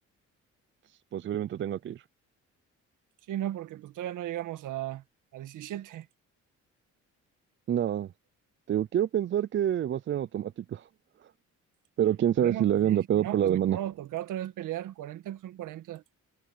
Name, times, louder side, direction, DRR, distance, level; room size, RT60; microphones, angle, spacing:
voice 1, 1.1-2.0 7.7-8.1 8.7-10.9 12.0-13.8, right 10 dB, 40° right, 0.4 m, -27 dB
voice 2, 3.3-5.0 5.3-6.1 12.4-16.0, right 12 dB, 85° right, 1.8 m, -36 dB
cardioid pair, 90°, 30 cm